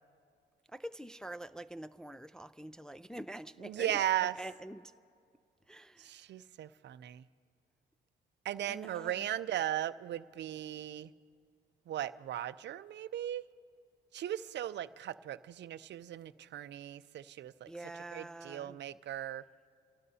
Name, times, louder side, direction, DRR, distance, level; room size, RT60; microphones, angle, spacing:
voice 1, 0.7-4.0 4.4-4.9 5.7-6.2 8.6-9.3 17.7-18.8, right 1 dB, 5° left, 0.3 m, -46 dB
voice 2, 3.6-4.3 6.0-7.2 8.4-11.1 11.9-13.4 14.1-17.7 18.1-19.4, right 12 dB, 60° right, 0.5 m, -37 dB
28.0 x 17.5 x 2.8 m
cardioid pair, 90°, 20 cm